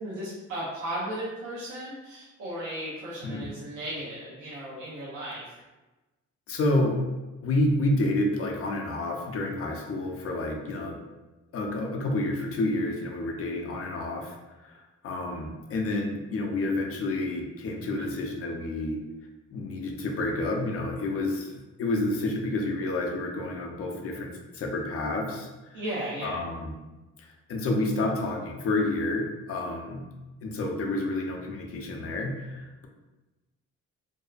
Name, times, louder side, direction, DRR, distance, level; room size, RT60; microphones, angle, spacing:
voice 1, 0.0-5.4 25.7-26.4, right 1 dB, 75° right, -8 dB, 0.8 m, -35 dB
voice 2, 6.5-7.0 7.4-11.0 11.5-19.0 19.5-25.8 26.2-26.7 27.2-30.1 30.4-32.9, left 2 dB, 50° left, 2 dB, 0.5 m, -29 dB
2.6 x 2.1 x 2.4 m, 1.1 s
cardioid pair, 90°, 30 cm